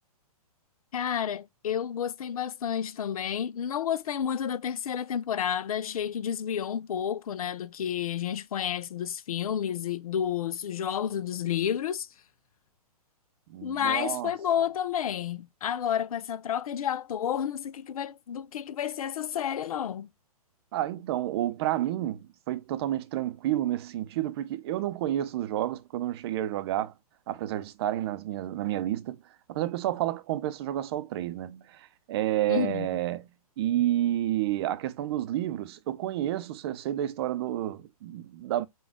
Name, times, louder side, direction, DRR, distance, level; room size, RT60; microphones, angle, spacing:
voice 1, 0.9-12.1 13.6-20.1 32.5-32.9, left 9 dB, 65° left, 0.5 m, -30 dB
voice 2, 13.5-14.3 20.7-26.9 27.3-29.2 29.5-33.3 33.6-38.7, right 13 dB, 40° right, 0.6 m, -30 dB
5.2 x 2.4 x 3.5 m
hypercardioid pair, 125°, 20 cm